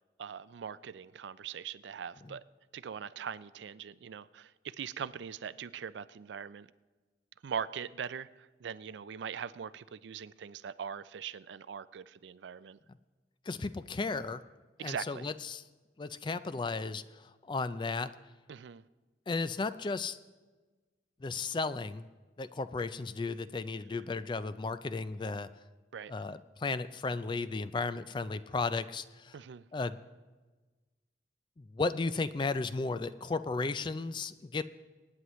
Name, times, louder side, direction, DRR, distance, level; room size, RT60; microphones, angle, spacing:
voice 1, 0.2-2.4 2.7-6.7 7.4-12.8 14.8-15.3 18.5-18.8 25.9-26.1 29.3-29.6, right 7 dB, 75° right, 16 dB, 0.4 m, -41 dB
voice 2, 13.5-14.4 14.8-15.6 16.0-18.1 19.3-20.2 21.2-22.1 22.4-25.5 26.1-29.3 29.7-30.0 31.6-34.6, left 3 dB, 25° left, 13 dB, 0.3 m, -34 dB
24.5 x 9.7 x 3.1 m, 1.3 s
head